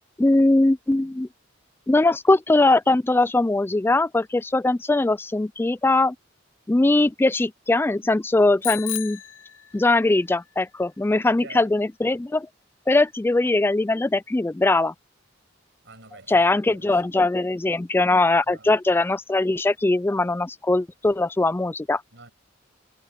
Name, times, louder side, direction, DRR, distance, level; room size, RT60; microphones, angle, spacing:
voice 1, 0.2-1.3 1.9-6.1 6.7-9.2 9.7-12.5 12.9-14.9 16.3-22.0, left 2 dB, 10° left, 0.3 m, -21 dB
Bicycle bell, 8.6-10.2, left 13 dB, 85° left, 1.6 m, -33 dB
voice 2, 11.2-11.7 15.8-17.0 18.5-18.7 22.1-22.3, right 3 dB, 65° right, 6.8 m, -46 dB
head